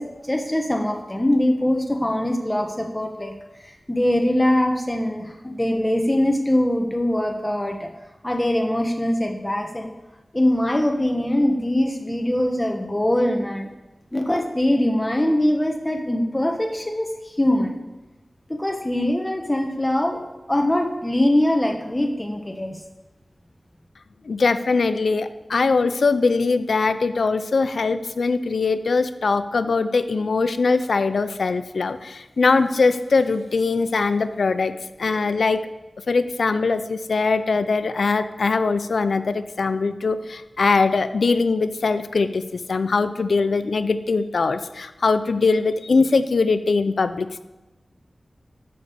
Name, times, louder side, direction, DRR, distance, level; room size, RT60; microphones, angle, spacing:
voice 1, 0.0-3.3 3.6-7.9 8.2-9.9 10.3-13.7 14.1-17.8 18.5-20.2 20.5-22.8, left 1 dB, 15° left, 2 dB, 1.1 m, -22 dB
voice 2, 24.2-34.7 35.0-35.7 36.1-47.4, left 4 dB, 85° left, 11 dB, 0.6 m, -21 dB
13.5 x 5.3 x 6.9 m, 1.1 s
wide cardioid pair, 80°, 0 cm